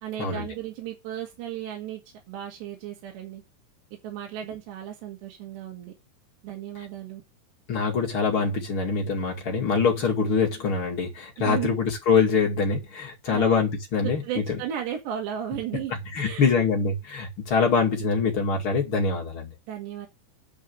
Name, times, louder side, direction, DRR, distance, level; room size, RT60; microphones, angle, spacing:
voice 1, 0.0-2.0 2.3-3.4 4.0-5.9 6.4-7.2 11.4-11.8 13.3-13.6 14.0-16.6 19.7-20.1, right 10 dB, 85° right, 4.4 m, -35 dB
voice 2, 7.7-14.2 16.1-19.5, left 5 dB, 40° left, 2.3 m, -24 dB
10.5 x 5.1 x 7.9 m
omnidirectional pair, 4.9 m